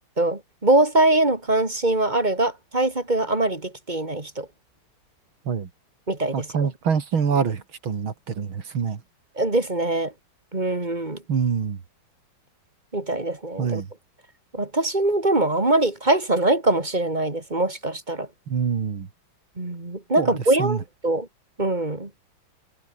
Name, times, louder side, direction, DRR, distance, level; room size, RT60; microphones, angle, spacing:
voice 1, 0.2-4.5 6.1-6.7 9.4-10.1 10.5-11.2 12.9-13.8 14.5-18.3 19.6-21.3 21.6-22.1, right 2 dB, 20° right, 2.5 m, -23 dB
voice 2, 6.3-9.0 11.3-11.8 13.6-13.9 18.5-19.1 20.2-20.3 20.6-20.8, right 6 dB, 80° right, 3.2 m, -25 dB
omnidirectional pair, 2.2 m